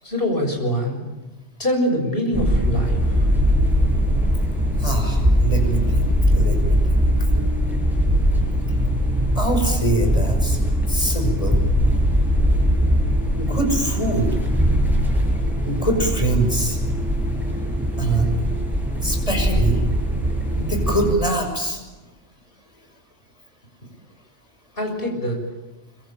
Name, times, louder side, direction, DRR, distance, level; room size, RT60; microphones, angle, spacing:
voice 1, 0.0-1.0 1.6-3.3 24.7-25.4, equal, 50° left, 3 dB, 7.3 m, -24 dB
sound 1, 2.3-21.1, equal, ahead, 6.8 m, -20 dB
voice 2, 4.8-6.8 9.3-10.6 10.9-11.6 13.4-14.4 15.6-16.8 18.0-18.4 19.0-19.8 20.6-21.8, right 2 dB, 30° left, 4 dB, 6.2 m, -24 dB
25.5 x 24.5 x 9.0 m, 1.1 s
omnidirectional pair, 1.2 m